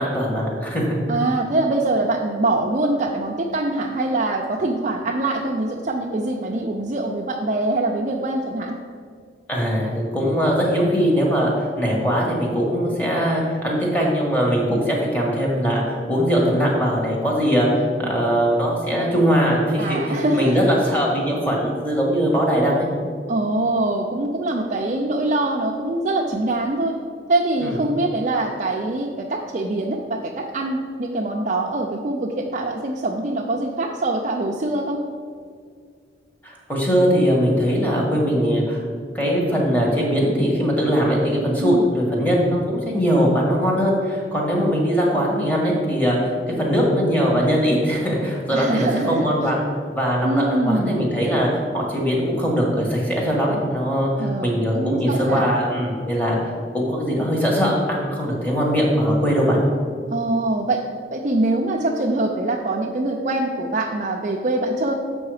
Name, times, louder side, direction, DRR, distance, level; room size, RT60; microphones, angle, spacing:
voice 1, 0.0-1.0 9.5-22.9 27.6-27.7 36.4-38.8 39.1-49.6 49.9-51.5 51.7-59.6, equal, 10° left, -3 dB, 1.4 m, -21 dB
voice 2, 1.1-8.8 19.8-20.6 23.3-27.0 27.3-35.0 41.6-41.8 48.5-49.5 50.2-51.0 54.2-55.5 60.1-60.8 61.1-64.9, right 2 dB, 45° right, -1 dB, 0.5 m, -23 dB
7.0 x 5.5 x 4.9 m, 2.1 s
head